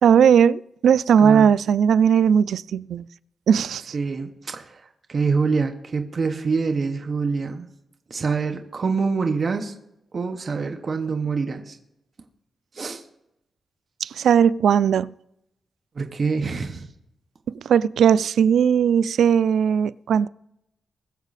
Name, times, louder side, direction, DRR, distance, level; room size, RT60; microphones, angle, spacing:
voice 1, 0.0-3.0 3.5-3.9 14.0-15.1 17.5-20.3, right 8 dB, 90° right, 0.3 m, -18 dB
voice 2, 3.9-4.8 5.1-7.7 8.1-9.7 10.1-11.8 12.7-13.0 16.0-16.9, right 4 dB, 40° right, 1.1 m, -25 dB
21.0 x 7.1 x 4.1 m
wide cardioid pair, 140°, 0 cm